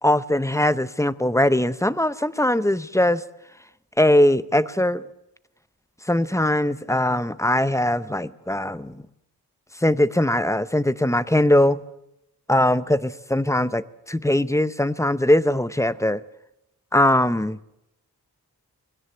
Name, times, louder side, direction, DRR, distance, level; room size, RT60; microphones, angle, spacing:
voice 1, 0.0-3.2 4.0-5.0 6.0-9.0 9.8-11.8 12.5-16.2 16.9-17.6, left 1 dB, 10° left, 16 dB, 0.7 m, -21 dB
21.5 x 17.5 x 7.2 m, 0.83 s
wide cardioid pair, 80°, 38 cm